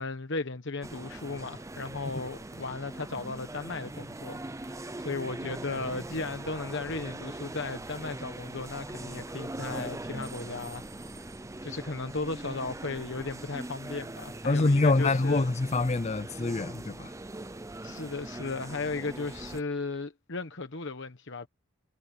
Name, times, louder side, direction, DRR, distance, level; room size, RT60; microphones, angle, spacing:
voice 1, 0.0-11.2 11.6-15.5 17.8-21.5, left 3 dB, 55° left, 1.2 m, -36 dB
sound 1, 0.8-19.6, right 2 dB, 15° right, 0.6 m, -41 dB
voice 2, 14.5-17.1, left 2 dB, 30° left, 0.5 m, -25 dB
head